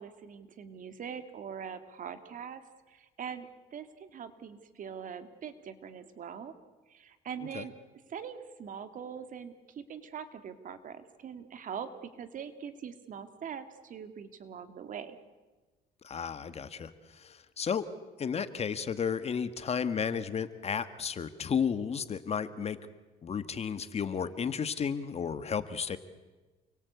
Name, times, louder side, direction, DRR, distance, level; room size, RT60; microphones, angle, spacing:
voice 1, 0.0-2.6 2.9-6.5 6.9-7.7 8.1-15.2, right 7 dB, 50° right, 9 dB, 2.4 m, -42 dB
voice 2, 16.0-17.9 18.2-22.8 23.2-26.0, left 7 dB, 40° left, 12 dB, 1.5 m, -33 dB
29.0 x 22.5 x 8.3 m, 1.2 s
cardioid pair, 110°, 17 cm